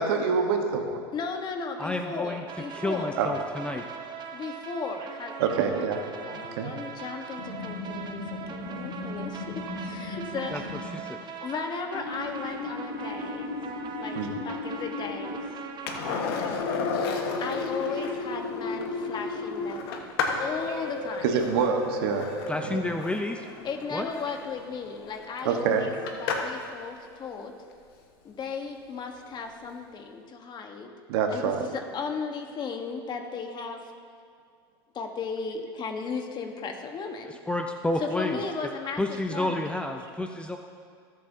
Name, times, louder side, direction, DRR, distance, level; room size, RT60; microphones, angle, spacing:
voice 1, 0.0-1.0 3.2-3.3 5.4-6.0 6.3-6.7 14.1-14.3 21.2-22.8 25.4-25.9 31.1-31.6, right 6 dB, 75° right, 4 dB, 1.3 m, -26 dB
voice 2, 1.1-3.3 4.3-5.3 5.7-5.9 6.1-8.2 8.5-10.7 11.4-13.5 14.0-15.4 15.8-16.8 17.4-20.1 20.4-21.3 23.6-25.9 26.2-27.5 28.2-30.9 31.3-33.9 34.9-37.3 38.0-39.7, left 5 dB, 35° left, 4 dB, 1.3 m, -36 dB
voice 3, 1.8-2.4 2.7-3.8 10.5-10.6 10.9-11.2 22.5-23.5 23.9-24.1 37.5-38.4 39.0-40.6, left 1 dB, 10° left, 4 dB, 0.5 m, -30 dB
sound 1, 2.5-16.2, right 7 dB, 35° right, 1.1 m, -41 dB
sound 2, 7.4-10.9 11.9-15.5 16.6-19.7 20.4-22.8, left 3 dB, 90° left, 2.1 m, -36 dB
Skateboard, 15.9-26.7 29.3-29.4, left 5 dB, 75° left, 1.5 m, -34 dB
19.5 x 7.6 x 2.8 m, 2.3 s
hypercardioid pair, 100°, 13 cm